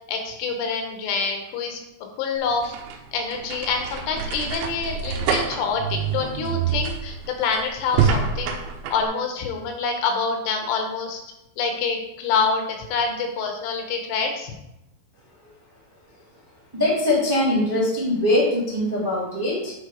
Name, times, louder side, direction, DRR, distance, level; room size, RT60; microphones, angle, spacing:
voice 1, 0.1-1.8 2.2-2.7 3.1-8.6 8.9-11.2 11.6-14.5, left 5 dB, 80° left, 3 dB, 3.4 m, -26 dB
sound 1, 2.4-9.1, right 6 dB, 75° right, 3.2 m, -27 dB
voice 2, 16.7-19.7, left 1 dB, 10° right, -5 dB, 1.3 m, -22 dB
9.7 x 4.3 x 5.1 m, 0.87 s
omnidirectional pair, 5.7 m